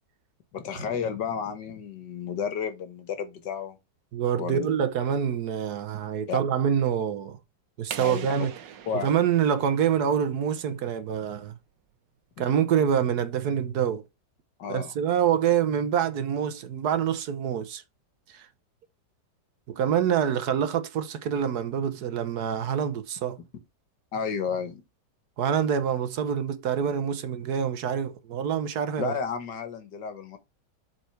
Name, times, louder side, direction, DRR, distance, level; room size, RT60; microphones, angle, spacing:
voice 1, 0.5-3.8 4.4-4.7 6.3-6.4 8.0-8.3 8.9-9.1 14.6-14.9 24.1-24.8 29.0-30.4, left 6 dB, 75° left, 1.9 m, -32 dB
voice 2, 4.1-7.4 7.8-8.5 8.9-11.5 12.4-14.0 14.7-17.8 18.3-18.5 19.7-23.4 25.4-29.1, right 8 dB, 65° right, 1.3 m, -26 dB
sound 1, 7.9-10.6, right 9 dB, 90° right, 1.6 m, -42 dB
7.3 x 4.5 x 4.5 m
omnidirectional pair, 1.9 m